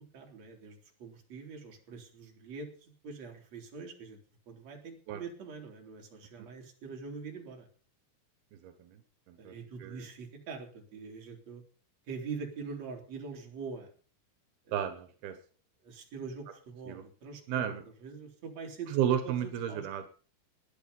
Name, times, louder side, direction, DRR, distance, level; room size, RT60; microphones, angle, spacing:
voice 1, 0.0-4.2 4.5-7.7 9.4-11.6 12.1-13.9 14.7-14.8 15.8-18.9 19.2-19.9, right 5 dB, 45° right, 2 dB, 4.4 m, -44 dB
voice 2, 8.5-9.0 9.3-9.5 9.8-10.1 14.7-15.4 16.9-17.0 17.5-17.8 18.9-20.1, right 9 dB, 85° right, 9 dB, 3.3 m, -33 dB
18.5 x 11.5 x 5.5 m, 0.40 s
omnidirectional pair, 4.3 m